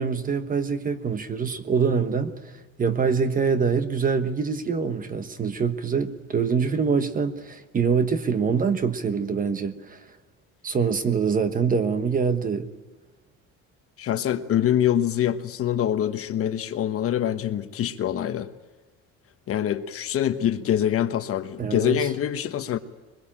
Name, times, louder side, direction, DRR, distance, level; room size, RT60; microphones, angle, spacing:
voice 1, 0.0-2.3 2.8-10.0 10.6-12.7 21.6-22.1, right 5 dB, 25° right, 1.2 m, -24 dB
voice 2, 14.0-18.5 19.5-22.8, left 10 dB, 45° left, 1.1 m, -25 dB
23.0 x 21.5 x 8.9 m
cardioid pair, 165°, 32 cm